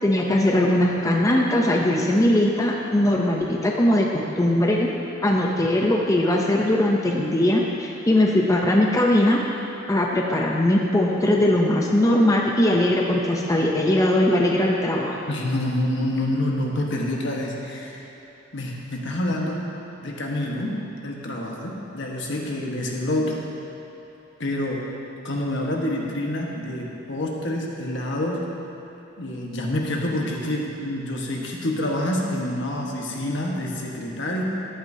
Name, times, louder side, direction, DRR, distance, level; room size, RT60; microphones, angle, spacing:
voice 1, 0.0-4.9 5.2-9.4 9.9-15.2, left 1 dB, 15° left, -1 dB, 0.6 m, -20 dB
voice 2, 15.3-18.0 18.5-19.6 20.0-20.7 21.0-23.4 24.4-24.8 25.2-28.4 29.2-34.4, left 1 dB, 65° left, -1 dB, 1.4 m, -27 dB
13.5 x 10.5 x 2.8 m, 3.0 s
head